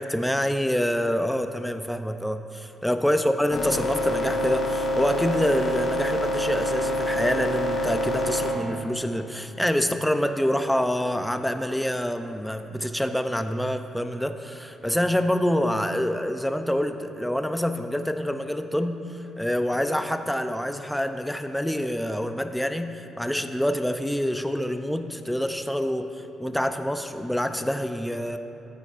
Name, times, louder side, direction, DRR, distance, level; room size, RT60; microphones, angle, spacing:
voice 1, 0.0-28.4, equal, 5° left, 8 dB, 0.5 m, -26 dB
sound 1, 3.5-8.5, left 1 dB, 55° left, 1.4 m, -26 dB
13.5 x 8.6 x 2.5 m, 2.8 s
cardioid pair, 90°, 0 cm